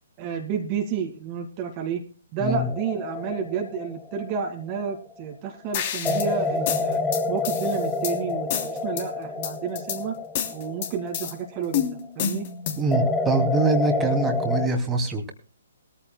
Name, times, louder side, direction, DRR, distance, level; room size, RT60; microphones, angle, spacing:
voice 1, 0.2-2.0 2.3-7.0 7.3-10.2 10.5-12.5, right 7 dB, 30° right, 2 dB, 2.1 m, -30 dB
sound 1, 2.4-5.1 6.0-11.8 12.9-14.7, left 3 dB, 10° left, 1.6 m, -28 dB
sound 2, 5.7-6.3 6.7-8.1 8.5-9.0 9.4-10.0 10.3-11.3 11.7-12.9, left 9 dB, 40° left, 3.0 m, -29 dB
voice 2, 12.8-15.3, right 3 dB, 15° right, 3 dB, 2.6 m, -24 dB
21.0 x 14.5 x 2.3 m, 0.39 s
figure-of-eight pair, 130°, 0 cm